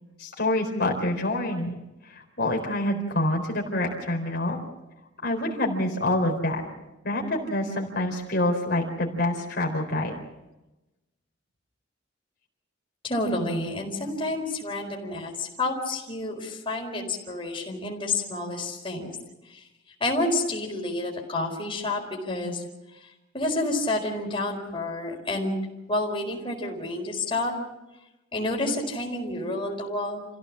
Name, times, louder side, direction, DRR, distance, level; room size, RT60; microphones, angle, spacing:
voice 1, 0.2-1.7 2.1-4.6 5.2-6.6 7.0-10.1, left 1 dB, 55° left, 0 dB, 4.0 m, -26 dB
voice 2, 13.0-19.2 19.5-19.6 20.0-22.6 23.3-25.6 25.9-27.5 28.3-30.3, left 2 dB, 25° left, -1 dB, 4.5 m, -29 dB
28.0 x 16.0 x 7.4 m, 1.0 s
head